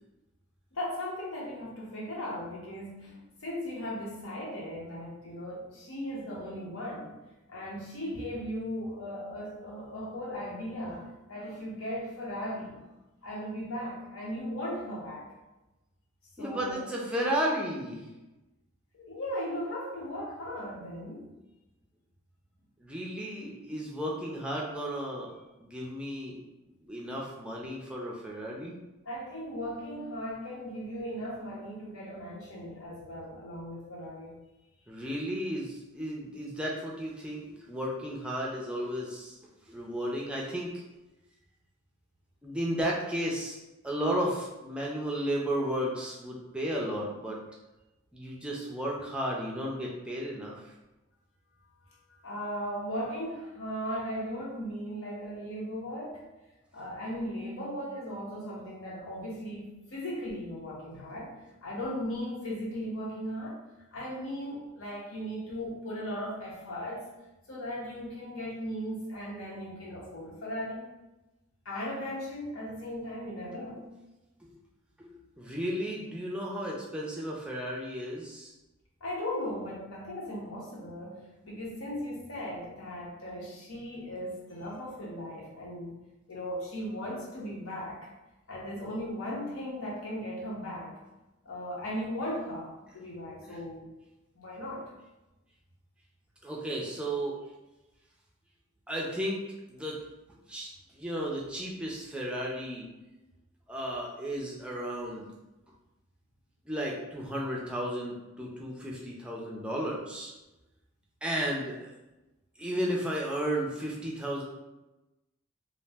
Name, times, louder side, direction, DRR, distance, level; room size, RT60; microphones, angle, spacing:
voice 1, 0.7-7.2 7.5-12.8 13.2-15.3 16.4-16.8 18.9-21.3 29.0-34.4 52.1-56.2 56.7-61.3 61.6-63.6 63.9-67.0 67.5-70.9 71.6-73.8 79.0-85.9 86.3-88.1 88.5-91.0 91.4-93.9 94.4-94.9, equal, 90° left, -4 dB, 0.9 m, -37 dB
voice 2, 16.4-18.1 22.8-26.4 26.8-28.8 34.9-39.4 39.7-40.7 42.4-43.6 43.8-47.4 48.1-50.7 74.4-74.5 75.0-78.5 93.4-93.6 96.4-97.4 98.9-99.4 99.7-100.0 100.5-102.9 103.7-105.3 106.7-110.3 111.2-111.9 112.6-114.4, equal, 5° right, -3 dB, 0.3 m, -34 dB
2.4 x 2.0 x 3.3 m, 1.0 s
head